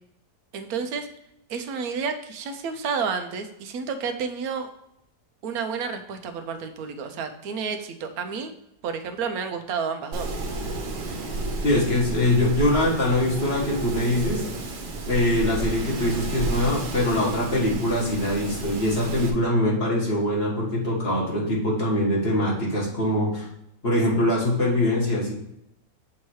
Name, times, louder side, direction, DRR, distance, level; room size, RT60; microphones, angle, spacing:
voice 1, 0.5-1.1 1.5-4.7 5.4-8.5 8.8-10.3, right 5 dB, 70° right, 7 dB, 1.1 m, -30 dB
Wind, 10.1-19.3, right 2 dB, 85° right, 1.5 m, -31 dB
voice 2, 11.6-14.4 15.1-23.5 23.8-25.3, left 1 dB, 40° left, -5 dB, 1.8 m, -23 dB
7.2 x 3.0 x 4.6 m, 0.80 s
omnidirectional pair, 1.7 m